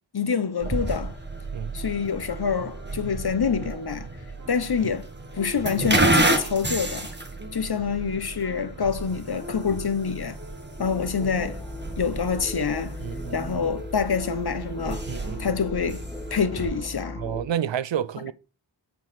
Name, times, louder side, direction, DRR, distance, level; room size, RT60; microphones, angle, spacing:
voice 1, 0.1-1.1 1.7-4.1 4.5-5.1 5.3-7.1 7.5-10.4 10.8-11.6 12.0-13.0 13.3-15.0 15.4-16.0 16.3-17.2, left 6 dB, 60° left, 1.0 m, -26 dB
sound 1, 0.6-16.8, right 2 dB, 25° right, 1.7 m, -31 dB
sound 2, 1.7-17.3, right 1 dB, 40° right, 2.6 m, -46 dB
sound 3, 10.8-17.4, left 2 dB, 10° left, 1.6 m, -37 dB
voice 2, 13.0-13.4 15.1-15.5 17.2-18.3, right 9 dB, 80° right, 0.6 m, -30 dB
9.4 x 4.7 x 4.3 m
wide cardioid pair, 55°, 44 cm